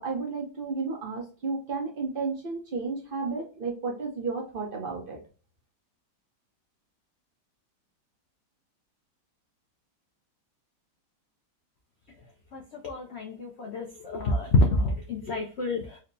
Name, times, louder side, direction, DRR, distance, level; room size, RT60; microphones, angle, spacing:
voice 1, 0.0-5.2, right 4 dB, 40° right, 0 dB, 0.8 m, -32 dB
voice 2, 12.5-16.0, left 2 dB, 75° left, 1 dB, 0.6 m, -27 dB
4.4 x 2.1 x 2.6 m, 0.36 s
omnidirectional pair, 1.8 m